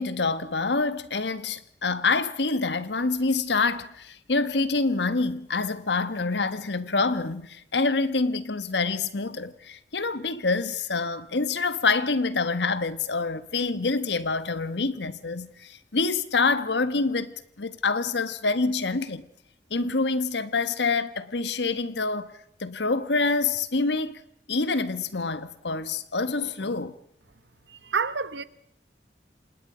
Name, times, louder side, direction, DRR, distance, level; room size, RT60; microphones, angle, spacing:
voice 1, 0.0-19.3 19.7-22.3 22.6-24.2 24.5-26.9, left 3 dB, 80° left, 1.3 m, -26 dB
voice 2, 27.7-28.4, right 5 dB, 90° right, 1.0 m, -28 dB
27.0 x 19.5 x 5.0 m
head